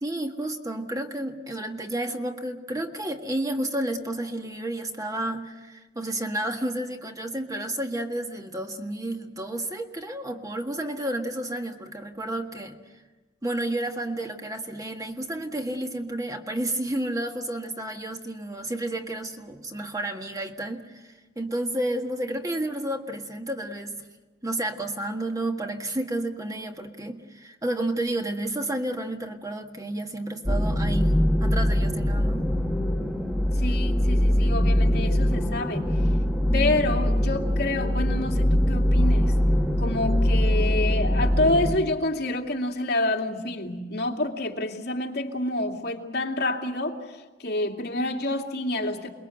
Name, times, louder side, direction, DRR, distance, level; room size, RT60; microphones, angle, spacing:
voice 1, 0.0-12.8 13.4-24.0 24.4-32.5, right 1 dB, 20° right, 4 dB, 1.7 m, -31 dB
sound 1, 30.4-41.8, equal, ahead, 1.4 m, -22 dB
voice 2, 33.6-36.0 36.5-39.4 39.8-49.1, left 2 dB, 60° left, 1 dB, 2.5 m, -28 dB
29.0 x 21.0 x 7.9 m, 1.2 s
head